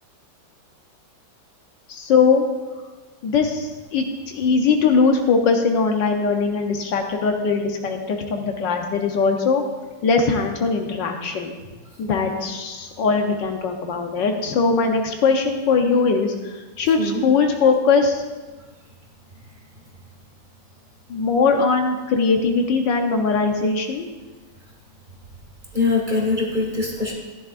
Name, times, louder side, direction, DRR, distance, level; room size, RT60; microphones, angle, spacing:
voice 1, 1.9-2.5 3.2-9.6 10.0-11.5 12.0-18.2 21.1-24.1, left 4 dB, 70° left, 4 dB, 1.5 m, -20 dB
voice 2, 25.7-27.1, left 3 dB, 25° right, -1 dB, 1.7 m, -23 dB
14.0 x 10.5 x 2.5 m, 1.3 s
omnidirectional pair, 2.1 m